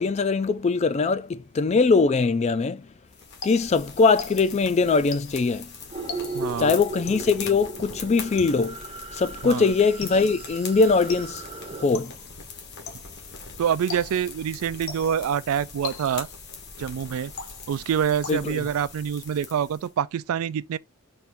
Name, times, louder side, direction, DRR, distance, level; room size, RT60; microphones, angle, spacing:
voice 1, 0.0-2.8 3.4-5.7 6.6-8.8 9.1-11.4 11.8-12.1 18.3-18.6, left 4 dB, 30° left, 0.3 m, -22 dB
sound 1, 3.1-19.9, left 4 dB, 50° left, 1.3 m, -42 dB
sound 2, 3.4-4.7 5.1-5.5 6.1-6.6 7.1-7.5 8.4-8.9 10.0-10.5 11.1-11.5 11.9-12.3 12.9-13.3 13.9-14.4 14.9-15.3 15.8-16.4 17.4-17.9 18.2-18.7, left 6 dB, 75° left, 0.8 m, -40 dB
sound 3, 5.9-11.8, right 3 dB, 30° right, 0.6 m, -37 dB
voice 2, 6.3-6.8 9.4-9.7 13.6-16.3 16.8-17.3 17.7-20.8, right 8 dB, 80° right, 0.3 m, -26 dB
4.3 x 2.5 x 3.5 m
head